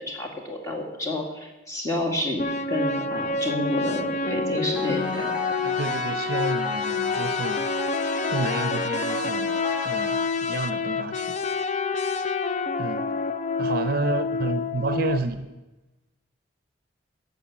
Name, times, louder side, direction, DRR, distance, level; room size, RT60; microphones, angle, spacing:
voice 1, 0.0-5.4, left 2 dB, 15° left, 0 dB, 2.0 m, -30 dB
sound 1, 2.4-15.2, left 4 dB, 40° left, 0.4 m, -27 dB
sound 2, 4.7-10.7, equal, 5° right, 1.5 m, -35 dB
voice 2, 5.6-7.7 8.3-9.6 9.8-11.4 12.8-13.1 13.6-15.5, right 3 dB, 50° right, 11 dB, 0.6 m, -30 dB
11.5 x 6.9 x 7.1 m, 1.1 s
head